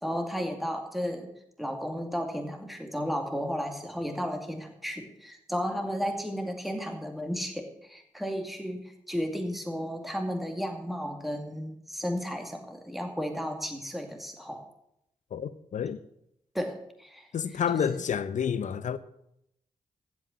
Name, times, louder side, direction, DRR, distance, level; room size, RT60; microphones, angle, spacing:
voice 1, 0.0-1.3 1.6-14.6 16.5-17.3 17.7-18.0, equal, ahead, 2.3 m, -33 dB
voice 2, 15.3-16.0 17.3-19.0, left 7 dB, 70° left, 0.7 m, -29 dB
8.3 x 7.5 x 7.3 m
supercardioid pair, 40°, 13 cm